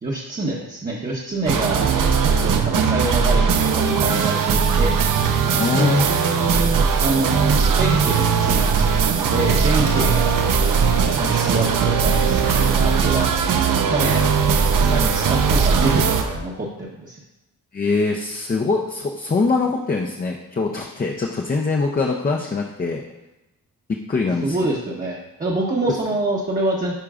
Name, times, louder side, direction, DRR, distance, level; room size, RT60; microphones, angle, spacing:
voice 1, 0.0-2.0 2.4-4.9 5.8-10.5 11.2-13.4 13.9-14.3 14.7-17.2 24.4-26.9, right 2 dB, 25° right, -3 dB, 0.9 m, -26 dB
sound 1, 1.5-16.2, right 6 dB, 65° right, 0.7 m, -19 dB
voice 2, 5.6-6.1 6.3-6.5 9.9-10.1 17.7-23.0 23.9-24.6 25.8-25.9, left 3 dB, 25° left, 0 dB, 0.6 m, -23 dB
sound 2, 9.7-16.4, right 1 dB, 85° right, 1.3 m, -30 dB
10.0 x 4.5 x 2.4 m, 0.97 s
cardioid pair, 105°, 34 cm